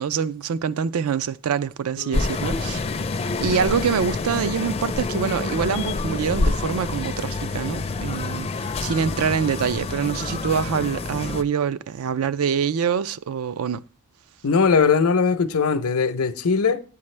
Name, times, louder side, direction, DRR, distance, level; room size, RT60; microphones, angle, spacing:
voice 1, 0.0-2.8 3.4-13.8, right 7 dB, 75° right, 0.4 m, -25 dB
sound 1, 2.1-11.4, left 3 dB, 30° left, 0.4 m, -27 dB
voice 2, 14.4-16.8, left 5 dB, 75° left, 0.7 m, -20 dB
8.7 x 8.4 x 3.2 m
head